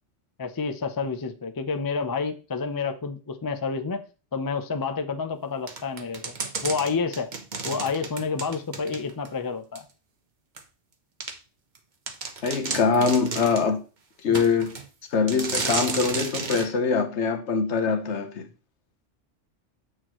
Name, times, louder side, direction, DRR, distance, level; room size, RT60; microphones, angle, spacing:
voice 1, 0.4-4.0 4.3-7.3 7.6-9.9 14.3-14.4, left 5 dB, 30° left, 0.4 m, -29 dB
sound 1, 5.7-9.3 9.7-9.8 10.6-10.7 11.2-11.3 11.7-11.8 12.1-13.7 14.3-14.9 15.3-16.7, right 4 dB, 45° right, 0.9 m, -32 dB
voice 2, 12.4-13.8 14.2-14.7 15.1-18.5, left 5 dB, 70° left, 1.2 m, -23 dB
7.7 x 6.3 x 3.1 m
omnidirectional pair, 1.2 m